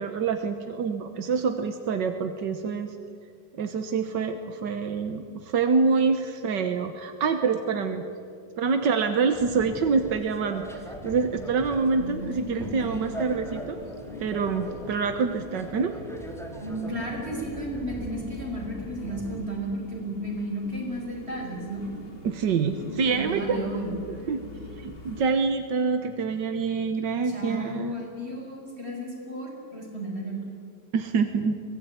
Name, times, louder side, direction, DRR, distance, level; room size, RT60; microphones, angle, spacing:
voice 1, 0.0-2.9 3.5-8.0 8.6-10.7 11.0-13.8 14.2-15.9 22.2-23.6 24.1-24.4 24.8-28.1 30.9-31.6, right 5 dB, 85° right, 7 dB, 1.9 m, -26 dB
sound 1, 9.3-19.4, right 1 dB, ahead, 2.4 m, -41 dB
sound 2, 11.7-25.3, left 3 dB, 35° left, 2.1 m, -43 dB
voice 2, 12.0-13.1 16.6-21.8 23.1-24.0 27.3-30.4, right 1 dB, 35° right, -1 dB, 6.1 m, -34 dB
23.5 x 18.0 x 9.2 m, 2.2 s
omnidirectional pair, 1.9 m